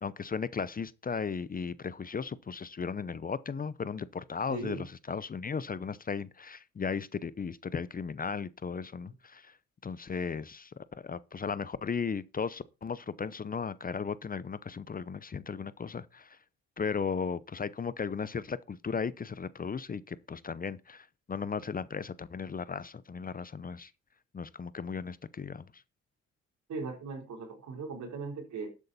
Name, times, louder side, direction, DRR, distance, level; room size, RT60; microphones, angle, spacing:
voice 1, 0.0-9.6 9.8-16.4 16.8-23.9 24.3-25.8, left 5 dB, 30° left, 0.7 m, -36 dB
voice 2, 4.5-4.9 26.7-28.7, right 4 dB, 70° right, 3.8 m, -38 dB
12.0 x 8.3 x 4.2 m
cardioid pair, 90°, 30 cm